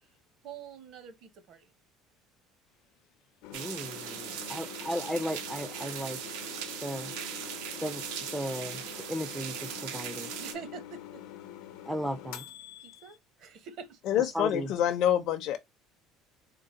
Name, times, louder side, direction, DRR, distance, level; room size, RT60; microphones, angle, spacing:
voice 1, 0.4-1.7 4.2-4.7 10.4-11.2 12.8-14.0, right 6 dB, 50° right, 0.8 m, -46 dB
sound 1, 3.4-13.2, left 12 dB, 85° left, 0.7 m, -46 dB
voice 2, 3.5-6.2 6.8-7.1 7.8-8.0 8.3-8.8 9.1-10.3 11.9-12.4 14.3-14.7, equal, ahead, 0.3 m, -35 dB
sound 2, 3.5-10.5, right 9 dB, 90° right, 0.7 m, -39 dB
voice 3, 14.1-15.6, left 11 dB, 55° left, 0.5 m, -26 dB
3.8 x 2.0 x 3.7 m
cardioid pair, 160°, 0 cm